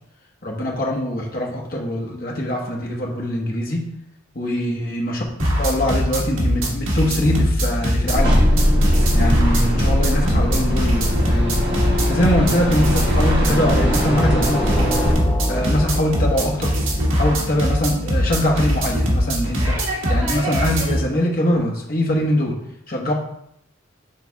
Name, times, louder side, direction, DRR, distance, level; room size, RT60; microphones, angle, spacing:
voice 1, 0.4-3.9 4.3-5.2 5.6-8.5 9.1-11.6 12.1-14.9 15.5-16.7 17.1-22.6 22.9-23.1, left 1 dB, 45° left, -2 dB, 1.4 m, -23 dB
sound 1, 5.4-21.0, equal, 75° right, 1.6 m, -22 dB
sound 2, 8.1-15.1, equal, 55° right, 1.3 m, -20 dB
sound 3, 13.4-17.3, equal, 20° left, 0.6 m, -27 dB
8.7 x 3.4 x 3.5 m, 0.73 s
head